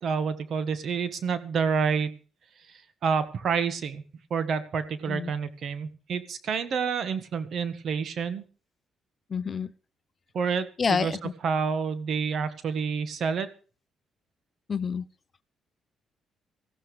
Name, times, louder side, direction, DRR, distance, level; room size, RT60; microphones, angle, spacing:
voice 1, 0.0-2.1 3.0-4.0 4.3-8.4 10.3-13.5, right 6 dB, 60° right, 12 dB, 1.5 m, -28 dB
voice 2, 9.3-9.7 10.8-11.3 14.7-15.0, left 6 dB, 40° left, 15 dB, 0.7 m, -28 dB
18.5 x 14.5 x 3.4 m, 0.37 s
cardioid pair, 90°, 0 cm